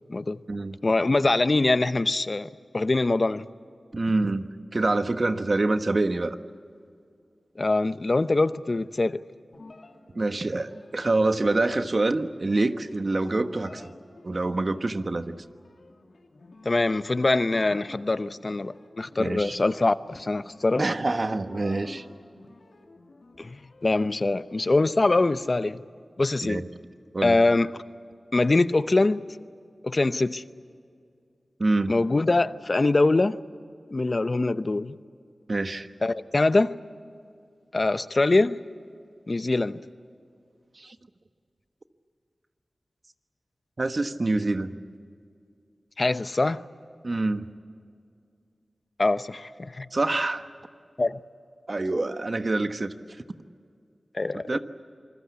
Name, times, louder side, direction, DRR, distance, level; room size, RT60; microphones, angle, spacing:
voice 1, 0.8-3.5 7.6-9.2 16.6-20.8 23.4-25.8 26.2-26.6 27.2-27.8 28.3-29.2 29.8-30.4 31.9-33.4 33.9-34.9 36.0-36.7 37.7-38.6 39.3-39.8 46.0-46.6 49.0-49.9 51.0-51.2 54.1-54.6, left 2 dB, 50° left, 13 dB, 0.8 m, -23 dB
voice 2, 3.9-4.5 4.7-6.4 10.1-13.9 14.2-15.3 19.2-19.6 20.8-22.0 26.4-26.7 27.1-27.4 31.6-31.9 35.5-35.9 40.8-41.0 43.8-44.7 47.0-47.4 49.9-50.5 51.7-52.9 54.5-54.6, right 2 dB, 55° right, 9 dB, 1.3 m, -26 dB
sound 1, 9.5-25.4, left 2 dB, 70° left, 2.9 m, -50 dB
27.5 x 21.0 x 8.4 m, 2.3 s
cardioid pair, 45°, 0 cm